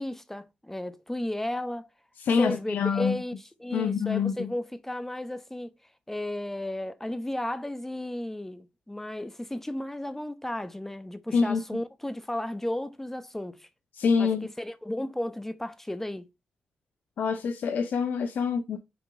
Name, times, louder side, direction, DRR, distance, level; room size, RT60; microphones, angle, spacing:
voice 1, 0.0-1.9 2.4-5.7 6.1-13.7 14.2-16.3, left 1 dB, 10° left, 1.1 m, -34 dB
voice 2, 2.2-3.2 3.7-4.5 11.3-11.6 13.9-14.5 17.2-18.8, left 5 dB, 75° left, 0.7 m, -26 dB
6.2 x 3.7 x 4.7 m
supercardioid pair, 50°, 3 cm